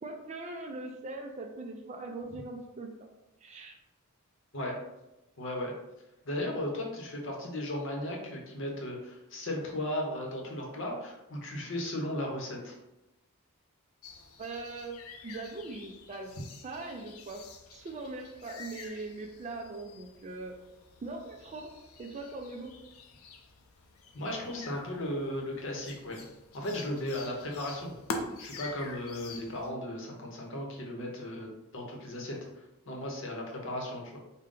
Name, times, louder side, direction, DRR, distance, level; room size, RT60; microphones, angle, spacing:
voice 1, 0.0-3.1 3.4-3.8 14.4-15.0 15.2-16.3 16.6-17.4 17.7-20.6 21.0-22.7, right 3 dB, 30° right, 3 dB, 0.3 m, -41 dB
voice 2, 5.4-5.7 6.2-12.7 24.1-26.2 26.5-27.9 28.4-34.2, left 1 dB, 60° left, 0 dB, 0.8 m, -36 dB
sound 1, 14.0-29.7, left 3 dB, 85° left, 0.5 m, -46 dB
3.7 x 2.2 x 3.7 m, 0.96 s
head